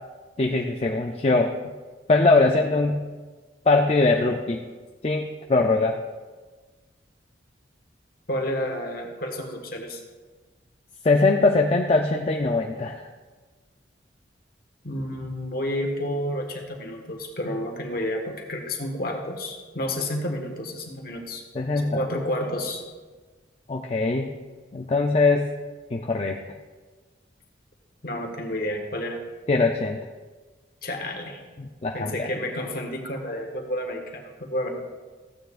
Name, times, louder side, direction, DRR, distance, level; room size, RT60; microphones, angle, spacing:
voice 1, 0.4-1.5 2.1-3.0 3.7-4.6 5.0-6.0 11.0-13.1 21.5-22.0 23.7-24.3 24.7-25.5 25.9-26.4 29.5-30.0 31.6-32.2, left 3 dB, 30° left, 2 dB, 0.4 m, -21 dB
voice 2, 8.3-10.0 14.8-21.5 21.8-22.8 28.0-29.2 30.8-31.4 31.9-34.7, left 1 dB, 50° left, 2 dB, 1.5 m, -30 dB
15.0 x 9.0 x 2.5 m, 1.4 s
head